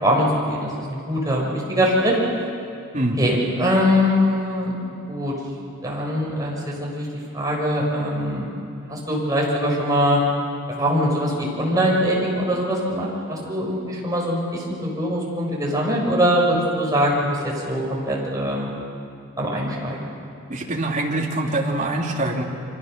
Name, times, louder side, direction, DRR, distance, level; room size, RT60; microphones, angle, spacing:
voice 1, 0.0-2.1 3.2-4.7 5.1-5.3 5.8-7.1 7.3-8.5 8.9-10.2 10.8-17.4 17.7-18.7 19.4-20.1, equal, 15° right, -3 dB, 6.4 m, -22 dB
voice 2, 2.9-3.3 20.5-22.4, right 1 dB, 35° right, -1 dB, 3.0 m, -24 dB
29.0 x 24.0 x 6.8 m, 2.4 s
head